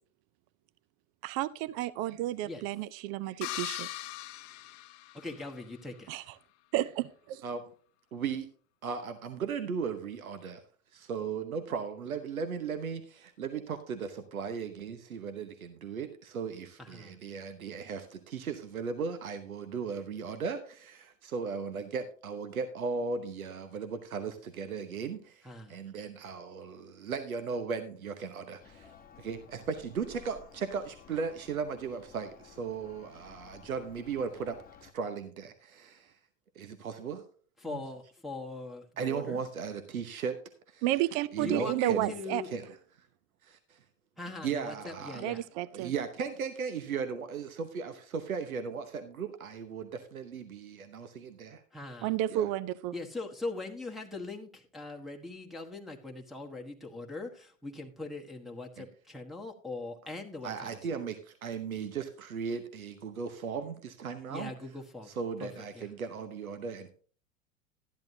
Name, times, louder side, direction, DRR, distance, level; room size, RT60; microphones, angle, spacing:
voice 1, 1.2-3.9 6.1-6.2 6.7-7.4 40.8-42.4 45.2-45.9 52.0-52.9, right 14 dB, 40° right, 18 dB, 0.5 m, -31 dB
sound 1, 3.4-5.6, left 16 dB, 45° left, 0.7 m, -40 dB
voice 2, 5.1-5.9 16.8-17.2 25.4-25.8 37.6-39.4 41.4-42.5 44.2-45.4 51.7-52.1 52.9-60.8 64.3-65.1 65.4-65.9, left 3 dB, ahead, -1 dB, 1.3 m, -41 dB
voice 3, 8.1-8.5 8.8-10.6 10.9-36.1 36.5-37.2 37.7-37.8 39.0-40.4 40.7-40.8 41.3-42.1 42.5-43.1 43.4-43.8 44.4-45.2 45.7-51.6 52.3-52.5 58.8-58.9 60.4-64.5 65.1-66.9, right 6 dB, 85° right, 9 dB, 1.0 m, -37 dB
Church bell, 28.6-34.9, left 7 dB, 20° left, 1.0 m, -55 dB
12.5 x 10.5 x 2.7 m, 0.43 s
hypercardioid pair, 90°, 41 cm